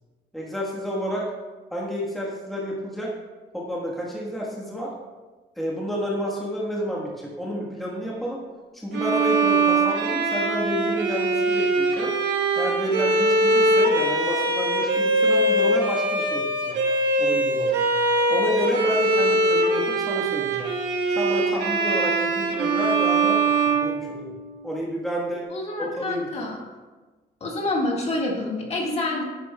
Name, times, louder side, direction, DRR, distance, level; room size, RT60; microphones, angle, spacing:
voice 1, 0.3-1.2 1.7-3.1 3.5-4.9 5.6-8.4 8.7-12.1 12.6-16.8 17.2-17.9 18.3-20.7 21.1-23.4 23.6-24.3 24.6-25.5 25.8-26.3, equal, ahead, -4 dB, 1.3 m, -30 dB
Bowed string instrument, 8.9-24.7, right 2 dB, 85° right, 1.2 m, -22 dB
voice 2, 25.5-26.6 27.4-29.2, left 2 dB, 35° left, -2 dB, 1.7 m, -27 dB
10.0 x 10.0 x 2.2 m, 1.3 s
cardioid pair, 155°, 18 cm